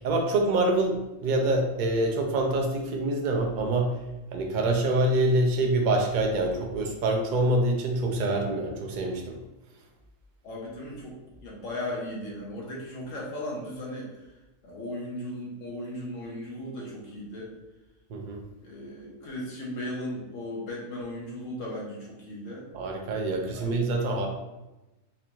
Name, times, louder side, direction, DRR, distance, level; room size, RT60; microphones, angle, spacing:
voice 1, 0.0-3.9 4.3-9.3 18.1-18.4 22.7-24.3, right 2 dB, 55° right, 2 dB, 0.6 m, -25 dB
voice 2, 10.4-11.1 11.4-14.1 14.6-17.5 18.6-22.7 23.5-24.3, left 1 dB, 75° left, -4 dB, 1.4 m, -37 dB
4.0 x 2.6 x 2.9 m, 1.0 s
omnidirectional pair, 1.3 m